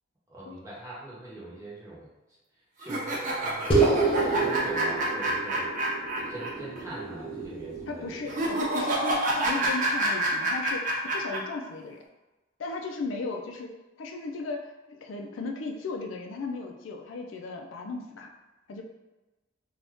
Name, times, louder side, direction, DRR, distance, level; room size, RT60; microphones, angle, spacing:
voice 1, 0.3-2.1 2.8-5.7 6.2-8.3, right 1 dB, 15° right, -7 dB, 0.8 m, -43 dB
sound 1, 2.8-6.5 6.8-6.9 8.3-11.4, right 2 dB, 45° right, 0.5 m, -28 dB
sound 2, 3.7-8.5, right 3 dB, 30° left, 0.6 m, -28 dB
voice 2, 7.9-12.0 12.6-13.7 14.0-18.3 18.7-18.8, left 3 dB, 85° left, 2 dB, 0.4 m, -36 dB
2.6 x 2.3 x 3.4 m, 1.1 s
head